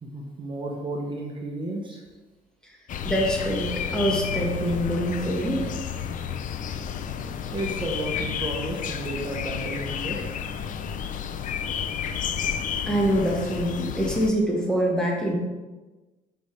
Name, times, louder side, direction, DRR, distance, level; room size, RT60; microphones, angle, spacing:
voice 1, 0.0-2.0 7.1-7.3 7.5-10.4, right 1 dB, 30° right, -1 dB, 1.0 m, -32 dB
sound 1, 2.9-14.3, left 7 dB, 50° left, 0.5 m, -31 dB
voice 2, 3.0-5.7 12.9-15.4, equal, 5° left, -2 dB, 1.5 m, -25 dB
6.8 x 5.5 x 3.3 m, 1.2 s
cardioid pair, 110°, 17 cm